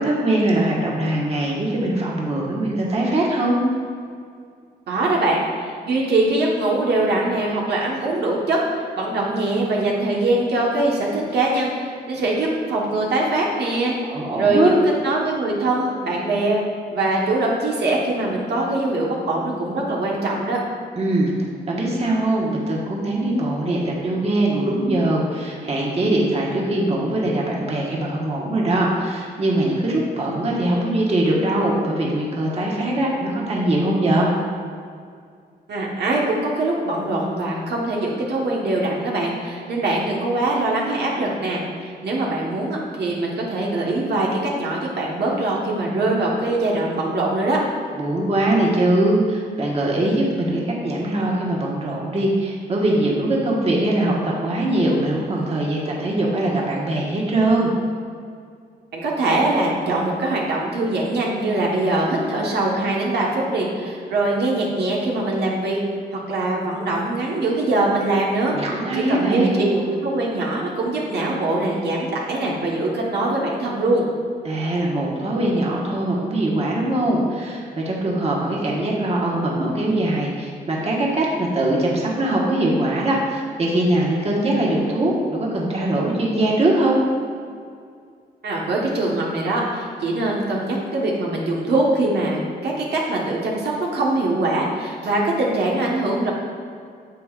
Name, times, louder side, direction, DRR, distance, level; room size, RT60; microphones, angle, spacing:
voice 1, 0.0-3.6 14.0-14.7 20.9-21.3 21.7-34.3 47.9-57.7 68.5-69.6 74.4-87.0, right 1 dB, 35° right, -3 dB, 1.3 m, -21 dB
voice 2, 4.9-13.9 14.4-14.8 15.0-16.6 16.9-20.6 35.7-47.6 58.9-65.8 66.3-68.5 68.9-74.0 88.4-96.3, right 2 dB, 70° right, -3 dB, 1.3 m, -22 dB
9.2 x 7.0 x 2.4 m, 2.2 s
cardioid pair, 110°, 17 cm